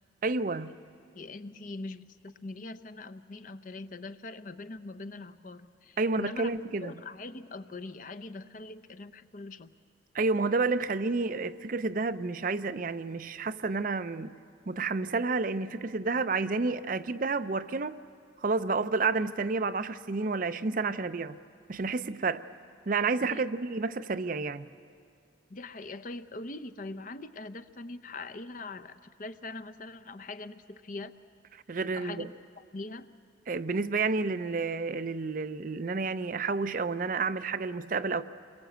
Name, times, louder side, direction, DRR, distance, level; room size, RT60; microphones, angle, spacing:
voice 1, 0.2-0.8 6.0-6.9 10.1-14.4 14.7-18.0 18.4-21.4 21.7-22.4 22.9-24.7 31.5-32.3 33.5-38.2, right 3 dB, 45° right, 0.5 m, -30 dB
voice 2, 1.1-6.5 6.8-9.7 23.2-23.4 25.5-31.1 31.9-32.3 32.7-33.1, left 2 dB, 45° left, 0.7 m, -42 dB
27.5 x 22.0 x 8.0 m
head